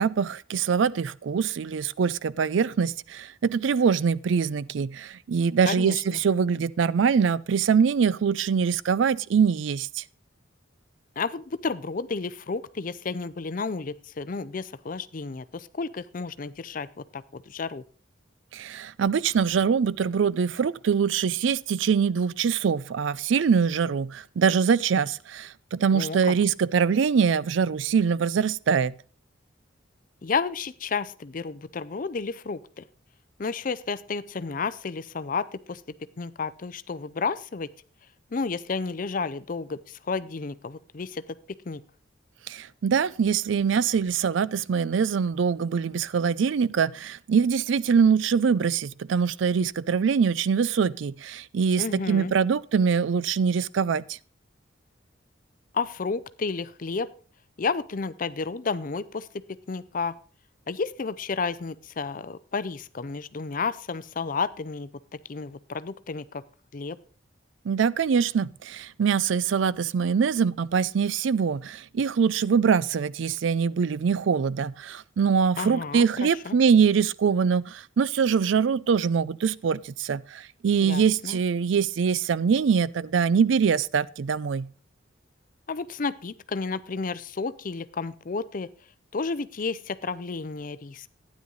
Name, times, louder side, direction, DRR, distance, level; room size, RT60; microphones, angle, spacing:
voice 1, 0.0-10.0 18.5-28.9 42.5-54.2 67.7-84.7, right 6 dB, 75° right, 0.4 m, -23 dB
voice 2, 5.7-6.2 11.2-16.9 17.1-17.8 25.9-26.3 30.2-32.8 33.4-35.8 36.2-37.7 38.3-41.2 41.7-41.8 51.8-52.3 55.7-57.1 57.6-59.3 59.7-60.2 60.7-64.9 65.3-66.4 66.7-67.0 75.6-76.6 80.8-81.4 85.7-88.7 89.1-91.1, left 4 dB, 45° left, 0.5 m, -31 dB
12.0 x 9.6 x 3.9 m
head